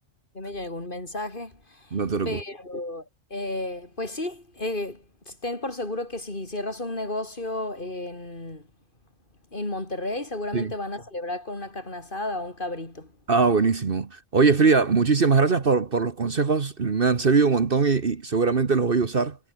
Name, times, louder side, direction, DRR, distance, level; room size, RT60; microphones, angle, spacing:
voice 1, 0.3-2.0 2.2-3.1 3.3-8.6 9.5-13.1, left 2 dB, 40° left, 4.1 m, -33 dB
voice 2, 1.9-2.4 10.5-10.7 13.3-19.4, right 4 dB, 45° right, 1.5 m, -21 dB
omnidirectional pair, 1.3 m